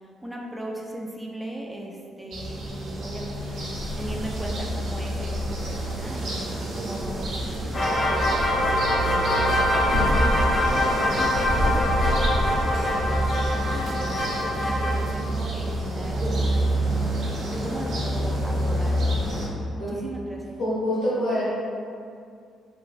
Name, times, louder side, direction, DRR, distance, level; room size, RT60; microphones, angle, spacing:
voice 1, 0.2-17.2 17.5-20.6, right 1 dB, 10° right, -1 dB, 0.3 m, -38 dB
sound 1, 2.3-19.5, right 1 dB, 65° right, 0.7 m, -27 dB
sound 2, 7.7-15.0, left 1 dB, 35° left, 0.6 m, -24 dB
voice 2, 20.6-21.4, equal, 80° left, -9 dB, 1.3 m, -25 dB
2.9 x 2.6 x 2.4 m, 2.4 s
cardioid pair, 90°, 0 cm